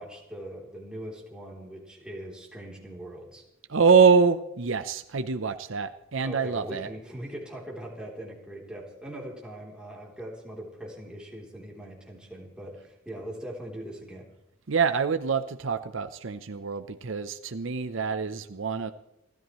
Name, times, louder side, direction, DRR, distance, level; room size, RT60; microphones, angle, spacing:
voice 1, 0.0-3.4 6.2-14.3, right 1 dB, 5° right, -2 dB, 3.3 m, -41 dB
voice 2, 3.7-6.9 14.7-18.9, right 5 dB, 65° right, 10 dB, 0.7 m, -25 dB
28.5 x 13.5 x 3.1 m, 0.85 s
head